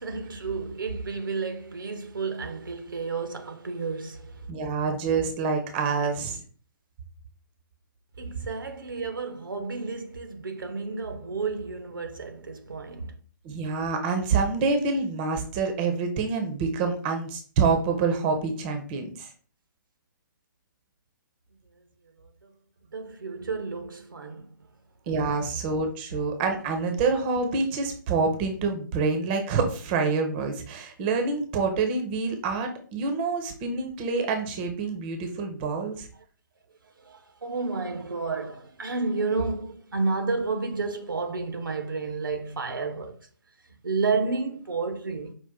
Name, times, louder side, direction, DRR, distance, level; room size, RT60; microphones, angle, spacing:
voice 1, 0.0-4.5 8.2-13.1 22.2-22.5 22.9-24.5 36.2-36.3 37.0-43.3 43.8-45.3, right 4 dB, 75° right, 0.9 m, -31 dB
voice 2, 4.5-6.4 13.4-19.3 25.1-36.1, right 4 dB, 30° right, 0.8 m, -27 dB
5.3 x 2.5 x 3.6 m
figure-of-eight pair, 135°, 11 cm